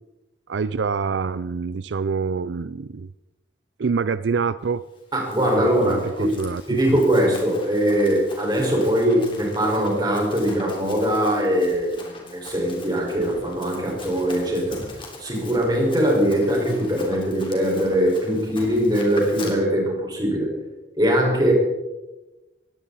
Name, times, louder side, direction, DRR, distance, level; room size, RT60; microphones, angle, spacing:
voice 1, 0.5-3.1 3.8-4.9 5.6-6.8, right 5 dB, 75° right, 16 dB, 0.4 m, -26 dB
Run, 5.0-19.5, left 2 dB, 30° left, 3.5 m, -42 dB
voice 2, 5.1-6.3 6.7-14.8 15.2-20.5 21.0-21.5, equal, 25° right, -1 dB, 5.3 m, -21 dB
19.5 x 16.5 x 4.2 m, 1.1 s
head